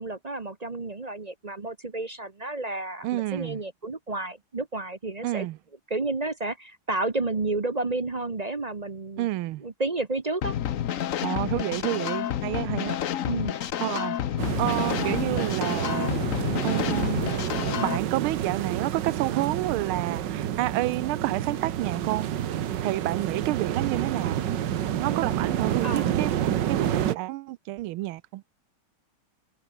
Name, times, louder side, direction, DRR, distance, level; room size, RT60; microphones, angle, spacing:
voice 1, 0.0-5.5 5.9-9.3 9.6-10.6 13.2-13.6 25.8-26.1, right 2 dB, 30° right, 0.7 m, -31 dB
voice 2, 3.0-3.6 5.2-5.6 9.2-9.7 11.2-13.0 13.8-14.2 14.6-17.3 17.8-22.3 22.8-24.4 25.0-28.4, right 17 dB, 85° right, 1.5 m, -29 dB
sound 1, 10.4-18.0, left 10 dB, 60° left, 0.9 m, -29 dB
sound 2, 14.4-27.1, right 10 dB, 60° right, 1.6 m, -29 dB
omnidirectional pair, 2.3 m